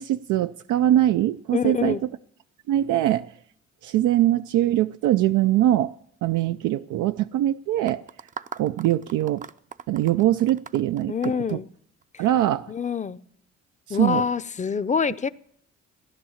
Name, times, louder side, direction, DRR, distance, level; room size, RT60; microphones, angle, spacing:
voice 1, 0.0-2.1 2.7-3.3 3.8-5.9 6.2-8.0 8.6-9.5 9.9-11.6 12.2-12.6 13.9-14.2, right 13 dB, 85° right, 0.5 m, -22 dB
voice 2, 1.5-2.0 11.1-11.7 12.7-13.2 13.9-15.3, left 6 dB, 25° left, 0.6 m, -25 dB
sound 1, 7.9-12.3, right 6 dB, 25° right, 0.5 m, -40 dB
15.5 x 11.0 x 7.2 m
cardioid pair, 90°, 30 cm